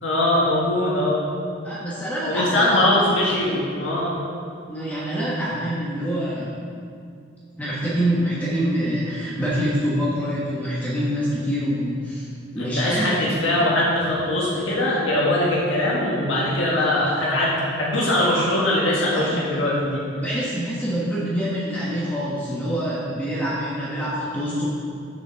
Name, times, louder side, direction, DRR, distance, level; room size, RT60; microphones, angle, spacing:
voice 1, 0.0-1.2 2.3-4.1 12.6-20.0, left 1 dB, 75° left, -6 dB, 1.9 m, -21 dB
voice 2, 1.6-2.8 4.7-6.5 7.6-12.3 12.5-13.3 19.1-19.6 20.1-24.7, equal, 10° left, -8 dB, 1.4 m, -25 dB
7.2 x 7.2 x 5.4 m, 2.4 s
head